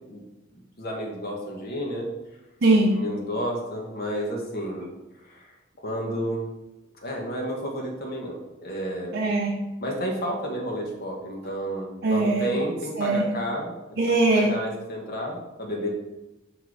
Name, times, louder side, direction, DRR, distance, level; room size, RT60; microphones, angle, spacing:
voice 1, 0.8-2.1 2.9-4.9 5.2-5.5 5.8-6.4 7.0-9.2 9.8-13.7 14.4-15.9, equal, 50° left, -1 dB, 1.4 m, -31 dB
voice 2, 2.6-3.0 9.1-9.6 12.0-12.5 13.0-13.3 14.0-14.5, right 2 dB, 55° right, -1 dB, 0.6 m, -21 dB
6.2 x 3.4 x 4.9 m, 1.0 s
head